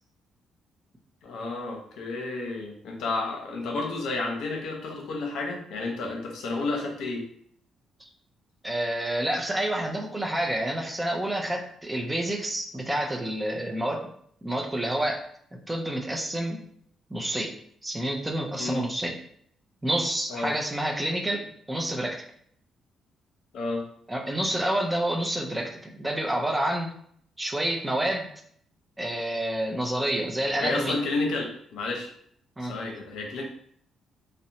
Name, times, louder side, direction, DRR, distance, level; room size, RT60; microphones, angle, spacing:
voice 1, 1.2-7.2 18.6-18.9 20.3-20.5 23.5-23.8 30.6-32.1 32.6-33.4, left 3 dB, 80° left, 0 dB, 0.6 m, -31 dB
voice 2, 8.6-14.1 14.4-15.2 15.7-16.6 17.1-17.5 17.8-19.2 19.8-22.2 24.1-26.9 27.4-28.3 29.0-31.0 32.6-32.8, right 1 dB, 10° right, 1 dB, 0.4 m, -28 dB
2.6 x 2.0 x 2.7 m, 0.64 s
cardioid pair, 90°, 0 cm